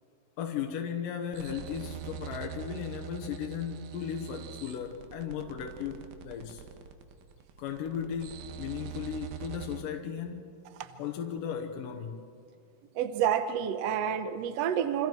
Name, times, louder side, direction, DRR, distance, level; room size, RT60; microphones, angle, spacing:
voice 1, 0.4-6.6 7.6-10.5 11.0-12.2, left 8 dB, 75° left, 4 dB, 2.7 m, -36 dB
sound 1, 1.3-9.8, right 9 dB, 90° right, 3.0 m, -44 dB
voice 2, 12.9-15.1, right 9 dB, 70° right, 9 dB, 1.6 m, -29 dB
28.5 x 26.0 x 4.6 m, 2.4 s
omnidirectional pair, 4.0 m